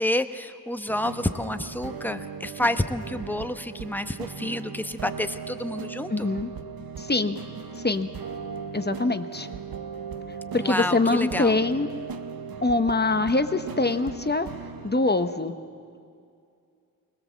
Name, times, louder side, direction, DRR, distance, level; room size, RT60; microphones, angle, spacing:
voice 1, 0.0-6.3 10.6-11.5, left 1 dB, 5° left, 9 dB, 1.0 m, -29 dB
sound 1, 0.9-15.2, right 6 dB, 85° right, 0.8 m, -38 dB
voice 2, 6.1-6.5 7.0-7.4 7.8-8.1 8.7-9.5 10.5-11.9 12.6-14.5 14.8-15.5, left 3 dB, 30° left, 9 dB, 1.0 m, -24 dB
20.5 x 19.0 x 7.4 m, 2.4 s
cardioid pair, 40°, 34 cm